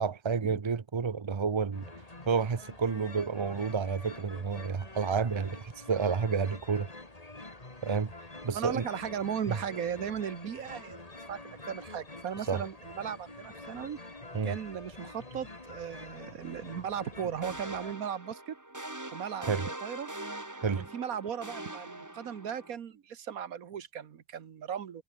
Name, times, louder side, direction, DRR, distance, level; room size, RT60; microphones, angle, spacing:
voice 1, 0.0-1.9 2.3-6.9 7.8-8.1 8.4-8.9 9.5-9.6 12.5-12.6 14.3-14.5 19.5-19.6 20.6-20.9, right 5 dB, 45° right, 0.3 m, -30 dB
sound 1, 1.7-17.9, left 2 dB, 25° left, 2.6 m, -47 dB
voice 2, 8.5-11.0 11.3-14.0 14.4-18.6 19.1-20.1 20.7-25.0, right 8 dB, 80° right, 1.6 m, -37 dB
sound 2, 17.4-22.7, right 1 dB, 15° right, 1.7 m, -42 dB
omnidirectional pair, 1.5 m